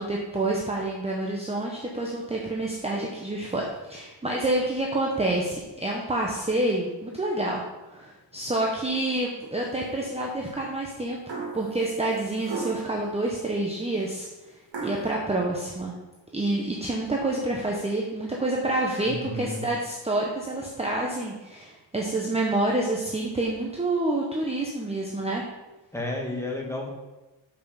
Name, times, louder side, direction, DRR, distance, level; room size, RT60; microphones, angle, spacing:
voice 1, 0.0-3.6 3.9-7.6 7.9-11.2 11.5-14.3 14.8-15.9 16.3-25.4, right 2 dB, 15° right, -2 dB, 1.0 m, -28 dB
sound 1, 11.3-11.7 12.4-13.0 14.7-15.1, right 3 dB, 60° right, 2.4 m, -33 dB
voice 2, 19.0-19.6 25.9-26.9, left 2 dB, 5° left, -1 dB, 1.6 m, -32 dB
6.2 x 5.8 x 7.0 m, 1.1 s
wide cardioid pair, 135°, 47 cm